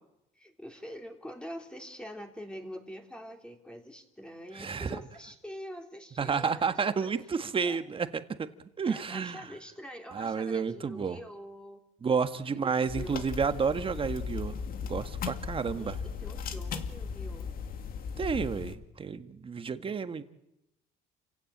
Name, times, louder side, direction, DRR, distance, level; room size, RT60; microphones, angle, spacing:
voice 1, 0.4-7.1 7.6-7.8 8.8-11.8 12.5-13.2 13.5-13.6 15.8-17.6, equal, 5° left, 3 dB, 3.4 m, -45 dB
voice 2, 4.6-5.0 6.2-8.1 8.4-8.5 8.8-9.5 10.1-11.2 12.0-14.6 14.9-16.0 18.2-20.2, right 5 dB, 30° right, 10 dB, 1.7 m, -30 dB
sound 1, 12.9-18.7, left 6 dB, 60° left, 2.3 m, -37 dB
29.5 x 17.0 x 8.7 m, 0.88 s
cardioid pair, 110°, 17 cm